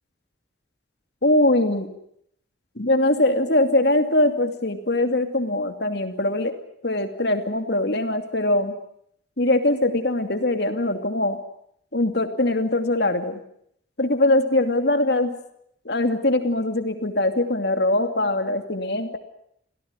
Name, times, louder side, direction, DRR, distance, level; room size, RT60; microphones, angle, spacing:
voice 1, 1.2-1.9 2.8-6.5 6.8-8.7 9.4-11.4 11.9-13.4 14.0-15.4 15.8-19.2, left 1 dB, 60° left, 7 dB, 2.7 m, -22 dB
27.0 x 17.0 x 9.8 m, 0.73 s
head